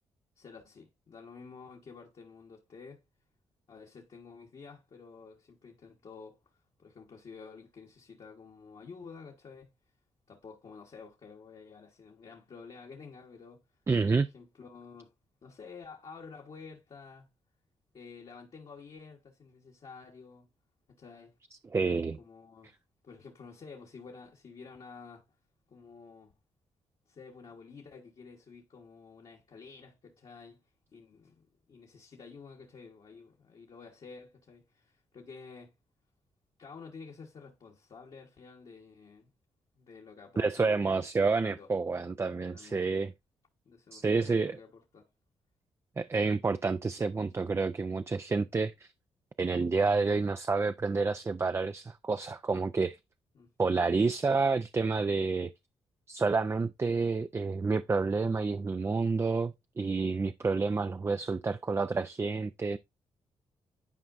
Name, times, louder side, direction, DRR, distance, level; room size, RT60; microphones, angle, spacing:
voice 1, 0.4-3.0 3.7-9.7 10.3-13.6 14.1-15.1 15.4-17.3 17.9-20.5 20.9-21.3 22.2-22.7 23.0-25.2 25.7-26.3 27.1-30.6 30.9-35.7 36.6-39.3 39.8-41.7 42.5-42.8 43.6-45.0 53.3-53.5, left 5 dB, 55° left, 1.3 m, -50 dB
voice 2, 13.9-14.3 21.7-22.2 40.4-43.1 43.9-44.6 46.0-48.9 49.4-53.0 53.6-55.5 56.1-62.8, right 4 dB, 25° right, 0.4 m, -29 dB
11.0 x 4.4 x 2.5 m
supercardioid pair, 60°, 11 cm